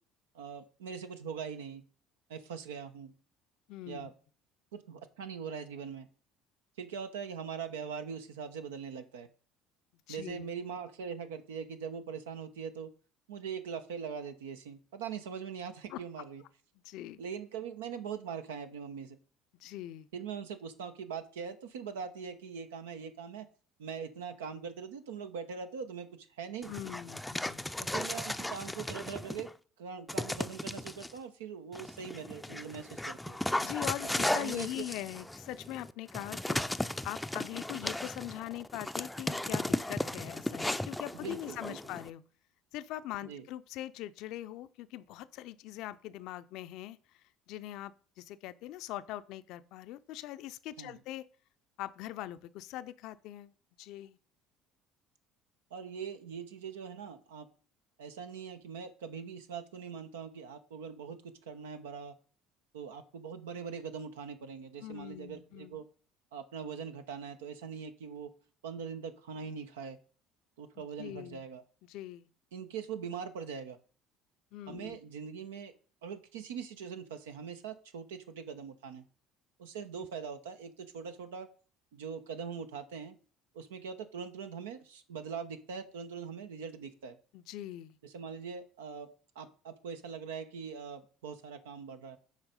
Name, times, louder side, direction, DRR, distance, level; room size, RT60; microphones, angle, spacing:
voice 1, 0.3-1.8 2.3-3.1 3.9-4.1 4.7-6.1 6.8-9.3 10.1-12.9 13.3-16.4 17.2-19.2 20.1-23.5 23.8-26.7 27.9-29.5 29.8-33.4 34.1-34.9 41.2-41.8 43.2-43.5 50.8-51.0 55.7-57.5 58.0-62.2 62.7-65.9 66.3-68.3 68.6-70.0 70.6-71.6 72.5-73.8 74.7-75.7 76.0-79.0 79.6-81.5 81.9-83.2 83.5-87.2 88.0-92.2, right 6 dB, 85° right, 0.9 m, -42 dB
voice 2, 3.7-4.1 10.1-10.4 15.9-16.0 16.8-17.2 19.6-20.1 26.7-27.7 33.6-42.2 42.7-51.3 51.8-54.2 64.8-65.8 70.8-71.4 71.9-72.3 74.5-75.0 87.3-88.0, left 14 dB, 65° left, 0.5 m, -42 dB
Dog, 26.6-29.5 30.1-31.1 31.7-42.1, left 1 dB, 5° left, 0.5 m, -36 dB
7.3 x 4.6 x 5.3 m
hypercardioid pair, 70°, 0 cm